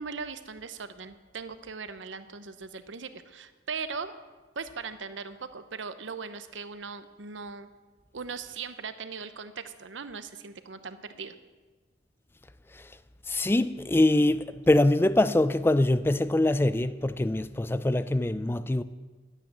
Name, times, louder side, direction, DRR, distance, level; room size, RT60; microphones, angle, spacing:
voice 1, 0.0-4.1 4.6-7.7 8.1-11.3, right 5 dB, 85° right, 0.8 m, -39 dB
voice 2, 13.3-18.8, left 1 dB, 15° left, 0.4 m, -24 dB
12.0 x 9.0 x 7.4 m
head